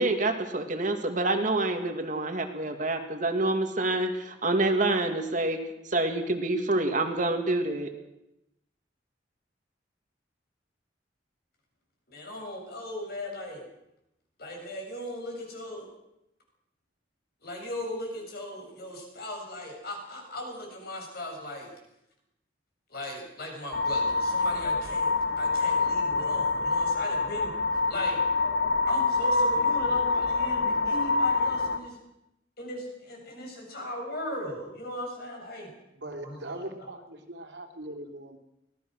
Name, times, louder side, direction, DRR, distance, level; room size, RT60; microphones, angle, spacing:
voice 1, 0.0-5.6 5.8-7.9, right 2 dB, 45° right, 5 dB, 2.3 m, -27 dB
voice 2, 12.1-13.6 14.4-15.9 17.4-21.7 22.9-28.2 28.9-32.0 32.6-35.7 36.2-36.9, left 1 dB, 55° left, 1 dB, 7.4 m, -38 dB
sound 1, 23.7-31.8, left 3 dB, 75° left, 1.7 m, -26 dB
voice 3, 36.0-38.4, right 1 dB, 65° right, 4 dB, 3.1 m, -40 dB
24.5 x 18.0 x 6.3 m, 0.86 s
head